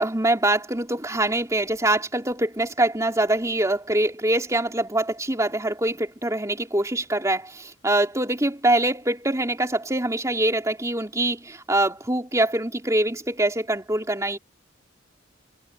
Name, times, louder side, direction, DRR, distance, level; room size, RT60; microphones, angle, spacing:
voice 1, 0.0-14.4, right 1 dB, 15° right, 3.2 m, -24 dB
head